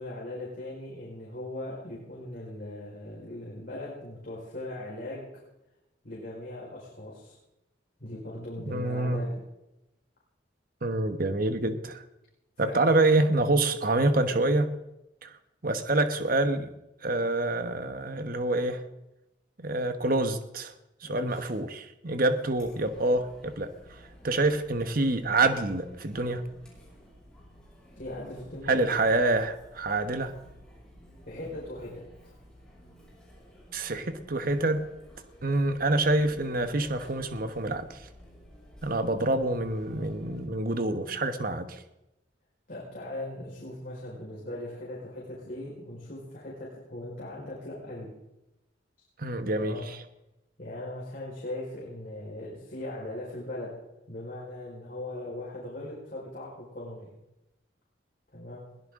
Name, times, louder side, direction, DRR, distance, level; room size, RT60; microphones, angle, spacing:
voice 1, 0.0-5.2 6.0-7.4 8.0-9.4 12.6-12.9 21.0-21.5 28.0-28.9 31.3-32.3 42.7-48.1 49.6-49.9 50.6-53.7 54.1-57.1 58.3-58.6, left 1 dB, 50° left, -5 dB, 4.9 m, -39 dB
voice 2, 8.7-9.2 10.8-12.0 12.6-14.7 15.2-15.4 15.6-16.7 17.0-18.8 19.6-20.7 21.0-26.4 28.7-30.3 33.7-34.9 35.4-38.1 38.8-41.8 49.2-50.0, right 2 dB, 50° right, 8 dB, 1.2 m, -27 dB
Chatter, 22.5-40.4, equal, 5° left, 6.5 m, -53 dB
22.0 x 17.0 x 3.8 m, 0.92 s
head